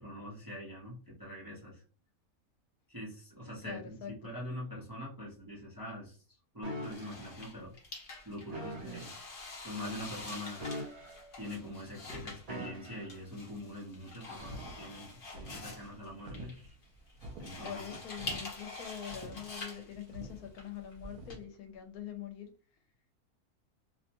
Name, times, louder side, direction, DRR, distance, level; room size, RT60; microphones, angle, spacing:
voice 1, 0.0-1.8 2.9-6.2 6.5-7.8 8.2-9.1 9.6-10.7 11.4-16.6 17.4-18.0, left 1 dB, 20° right, 0.6 m, -44 dB
voice 2, 3.6-4.1 17.6-22.5, left 9 dB, 80° left, 1.1 m, -44 dB
sound 1, 6.6-7.3 8.5-9.2 10.6-11.5 12.5-13.2 14.4-14.6, equal, 55° right, 1.0 m, -43 dB
sound 2, 6.8-21.4, left 3 dB, 45° left, 0.8 m, -46 dB
sound 3, 14.4-21.4, right 1 dB, 75° right, 1.1 m, -48 dB
2.7 x 2.1 x 2.9 m
omnidirectional pair, 1.6 m